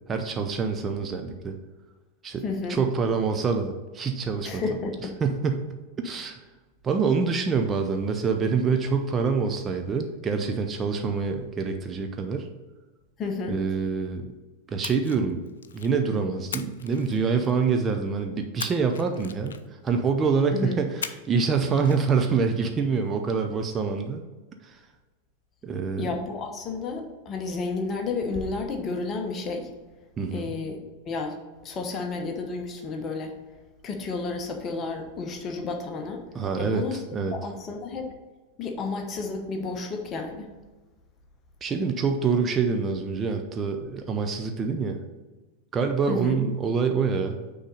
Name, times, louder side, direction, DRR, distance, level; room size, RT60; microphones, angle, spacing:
voice 1, 0.1-1.6 2.2-2.4 2.7-4.6 5.2-6.4 6.8-12.5 13.5-14.2 14.7-15.4 15.7-19.5 19.8-24.2 24.6-24.8 25.6-26.1 30.2-30.5 36.3-37.3 41.6-45.0 45.7-47.6, right 5 dB, 20° right, 4 dB, 0.6 m, -26 dB
voice 2, 2.4-2.8 4.4-5.2 13.2-13.6 20.5-20.8 26.0-29.7 30.3-30.8 31.1-31.4 31.6-33.3 33.8-36.2 36.6-37.0 37.3-38.1 38.6-40.5 46.1-46.4, left 4 dB, 30° left, 3 dB, 1.0 m, -31 dB
Splash splatter, 14.8-16.0 16.5-17.7 18.6-19.9 21.0-21.5 21.8-22.0, left 7 dB, 65° left, 0.3 m, -38 dB
6.2 x 3.9 x 5.5 m, 1.2 s
figure-of-eight pair, 90°, 0 cm